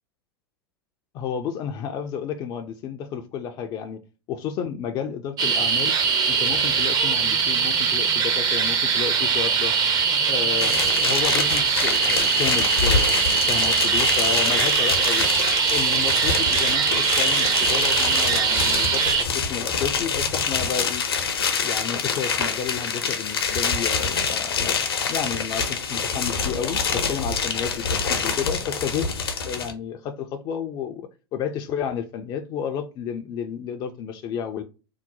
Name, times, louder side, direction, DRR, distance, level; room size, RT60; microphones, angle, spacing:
voice 1, 1.1-4.0 4.3-5.9 6.3-9.7 10.3-15.3 15.7-21.0 21.6-29.1 29.4-34.6, left 8 dB, 30° left, 0.4 m, -31 dB
sound 1, 5.4-19.2, right 6 dB, 30° right, 0.5 m, -22 dB
sound 2, 10.6-29.7, left 5 dB, 70° left, 0.7 m, -26 dB
2.7 x 2.0 x 3.8 m
figure-of-eight pair, 90°, 13 cm